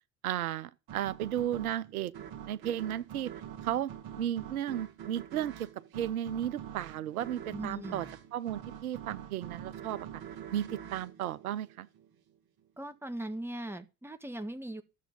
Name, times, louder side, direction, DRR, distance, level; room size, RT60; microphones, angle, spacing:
voice 1, 0.2-2.1 2.5-3.3 3.6-3.9 4.2-5.5 5.9-8.1 8.3-10.1 10.5-11.9, right 11 dB, 85° right, 0.6 m, -34 dB
sound 1, 0.9-12.2, right 9 dB, 60° right, 1.8 m, -45 dB
voice 2, 7.5-8.1 12.8-14.8, right 1 dB, 5° right, 1.4 m, -39 dB
13.0 x 7.3 x 5.3 m
hypercardioid pair, 55°, 42 cm